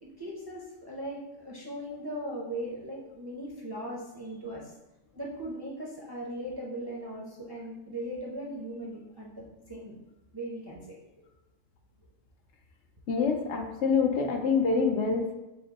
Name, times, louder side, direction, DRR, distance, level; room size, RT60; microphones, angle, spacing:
voice 1, 0.0-4.7 5.2-9.9 10.3-11.0, right 1 dB, 25° right, -4 dB, 0.5 m, -39 dB
voice 2, 13.1-15.3, left 5 dB, 70° left, 3 dB, 0.8 m, -26 dB
5.8 x 2.0 x 4.0 m, 1.0 s
omnidirectional pair, 1.3 m